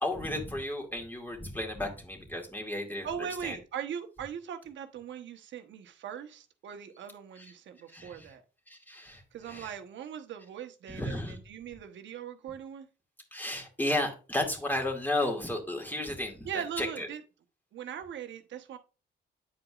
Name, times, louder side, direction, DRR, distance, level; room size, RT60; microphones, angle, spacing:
voice 1, 0.0-3.6 7.4-7.5 7.9-8.3 8.7-9.2 9.5-9.7 10.9-11.4 13.3-17.1, left 1 dB, 10° left, 0 dB, 2.2 m, -33 dB
voice 2, 3.0-8.4 9.3-12.9 16.4-17.2 17.7-18.8, right 8 dB, 70° right, 7 dB, 1.1 m, -40 dB
9.5 x 4.9 x 2.4 m, 0.34 s
cardioid pair, 90°, 20 cm